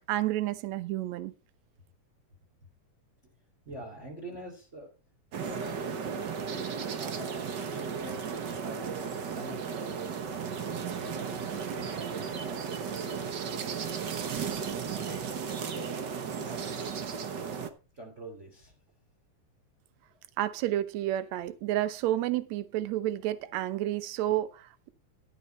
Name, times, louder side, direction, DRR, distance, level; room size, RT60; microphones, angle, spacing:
voice 1, 0.1-1.3 20.4-24.9, right 13 dB, 70° right, 1.9 m, -30 dB
voice 2, 3.6-4.9 5.3-5.9 6.5-8.1 8.6-10.1 10.7-13.2 13.9-16.9 17.9-18.7, right 2 dB, 25° right, 3.0 m, -45 dB
sound 1, 5.3-17.7, right 6 dB, 85° right, 0.9 m, -35 dB
13.0 x 8.6 x 4.3 m
omnidirectional pair, 3.7 m